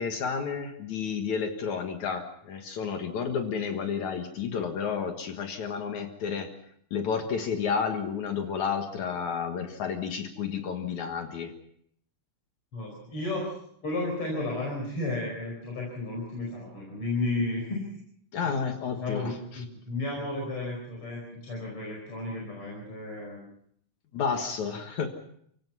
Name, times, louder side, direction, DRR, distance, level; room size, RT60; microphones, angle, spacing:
voice 1, 0.0-6.5 6.9-11.5 18.3-19.6 24.1-25.1, left 6 dB, 65° left, 5 dB, 2.9 m, -31 dB
voice 2, 12.7-13.6 13.8-17.8 18.9-23.4, left 2 dB, 45° left, -1 dB, 5.8 m, -33 dB
29.5 x 16.5 x 5.6 m, 0.69 s
omnidirectional pair, 3.6 m